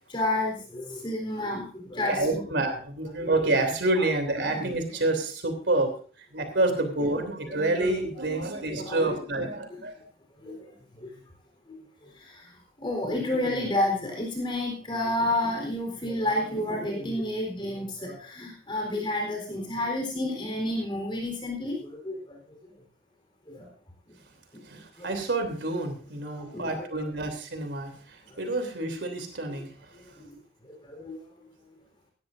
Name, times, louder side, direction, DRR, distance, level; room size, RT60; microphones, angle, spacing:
voice 1, 0.1-2.4 3.2-3.3 4.0-4.1 7.7-7.8 8.7-9.8 10.4-11.1 11.7-11.8 12.1-12.5 12.8-22.6 23.5-23.7 25.0-25.1 26.3-27.1 28.3-28.4 30.2-30.4 30.6-31.2, left 1 dB, 25° left, 1 dB, 4.0 m, -31 dB
voice 2, 2.1-5.9 6.2-9.9 24.6-29.7, right 2 dB, 80° right, 6 dB, 3.2 m, -28 dB
18.5 x 13.0 x 2.6 m, 0.40 s
head